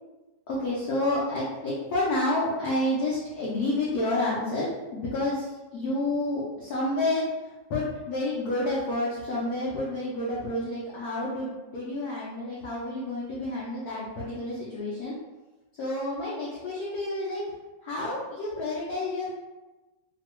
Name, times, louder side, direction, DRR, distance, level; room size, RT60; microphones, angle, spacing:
voice 1, 0.5-7.3 7.7-15.2 15.8-17.4 17.8-19.3, left 1 dB, 65° left, -6 dB, 1.0 m, -29 dB
2.9 x 2.4 x 3.0 m, 1.1 s
omnidirectional pair, 2.1 m